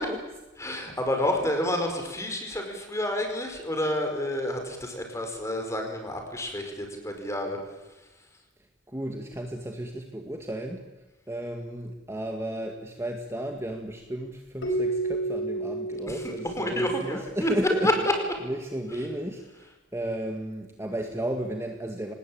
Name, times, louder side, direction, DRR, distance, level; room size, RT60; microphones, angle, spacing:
voice 1, 0.6-7.6 16.1-16.2 16.6-17.5 17.8-17.9, left 1 dB, 15° left, 4 dB, 5.0 m, -29 dB
voice 2, 8.9-10.9 11.3-17.9 18.4-22.1, right 1 dB, 15° right, 3 dB, 2.1 m, -33 dB
Keyboard (musical), 14.6-17.4, right 2 dB, 85° left, 4.9 m, -31 dB
25.5 x 20.0 x 8.8 m, 1.1 s
head